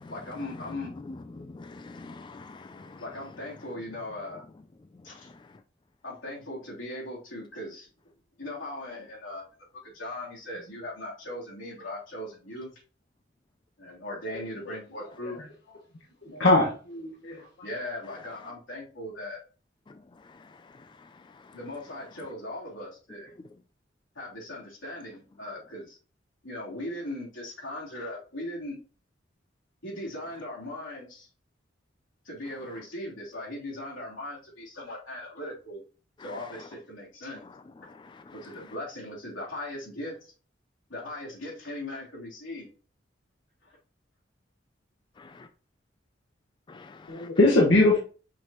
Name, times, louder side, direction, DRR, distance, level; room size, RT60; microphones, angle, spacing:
voice 1, 0.1-0.9 3.0-4.4 5.0-5.3 6.0-7.9 8.4-9.4 9.8-12.7 13.8-15.4 17.6-19.4 21.5-23.3 24.1-26.0 26.4-28.8 29.8-31.3 32.2-35.8 36.2-37.4 38.3-40.3 40.9-42.7 43.6-43.7, left 1 dB, 85° left, 3.3 m, -39 dB
voice 2, 1.4-3.0 46.7-47.3, left 3 dB, 25° left, 0.3 m, -45 dB
voice 3, 16.3-17.4 47.1-48.0, left 2 dB, 70° left, 1.4 m, -21 dB
6.2 x 5.8 x 3.0 m
head